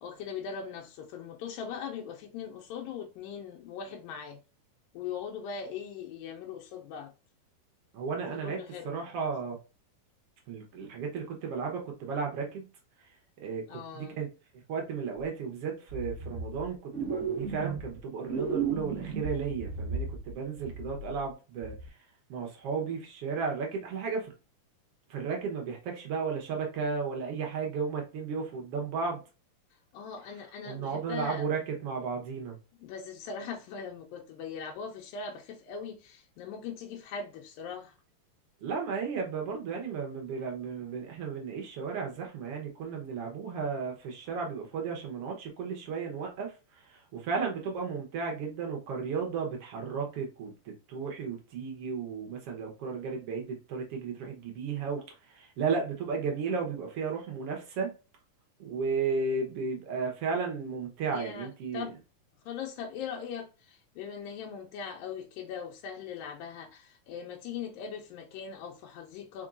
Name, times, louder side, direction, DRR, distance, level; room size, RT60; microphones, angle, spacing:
voice 1, 0.0-4.4 4.9-7.1 8.3-9.0 13.7-14.2 29.9-31.5 32.8-37.9 47.5-47.7 61.1-62.0 62.5-69.5, left 6 dB, 85° left, 2.4 m, -40 dB
voice 2, 7.9-9.6 10.5-12.7 13.4-14.3 14.5-24.3 25.1-29.2 30.6-32.6 38.6-57.9 58.6-61.9, right 5 dB, 65° right, 1.5 m, -34 dB
sound 1, 15.2-15.3 15.9-16.7 16.9-18.0 18.3-20.3 20.6-21.3 21.6-21.9, right 5 dB, 45° right, 0.9 m, -35 dB
4.6 x 4.5 x 2.5 m
omnidirectional pair, 4.0 m